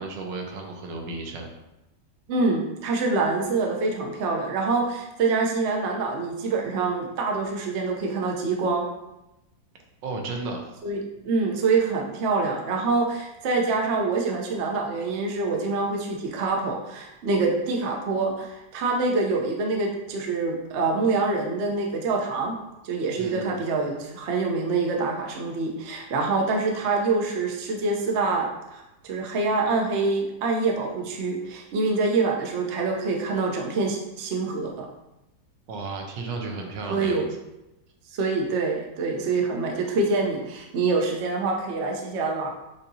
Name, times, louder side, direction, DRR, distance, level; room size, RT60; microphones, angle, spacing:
voice 1, 0.0-1.5 10.0-10.7 23.1-23.5 35.7-37.3, right 3 dB, 90° right, 2 dB, 1.5 m, -33 dB
voice 2, 2.3-8.8 10.8-22.5 22.8-34.9 36.9-37.3 38.1-42.5, right 3 dB, 60° right, 1 dB, 0.8 m, -25 dB
7.1 x 2.8 x 2.7 m, 0.94 s
omnidirectional pair, 1.9 m